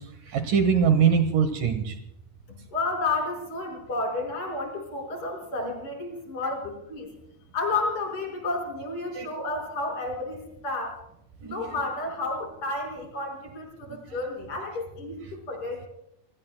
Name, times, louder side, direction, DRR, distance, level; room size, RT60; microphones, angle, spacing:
voice 1, 0.0-2.0 9.1-9.3 11.4-11.6 14.1-14.2, right 7 dB, 65° right, 8 dB, 2.7 m, -23 dB
voice 2, 2.5-7.1 7.5-11.0 11.4-15.9, left 3 dB, 35° left, 2 dB, 6.1 m, -31 dB
29.5 x 20.5 x 2.2 m, 0.81 s
omnidirectional pair, 4.3 m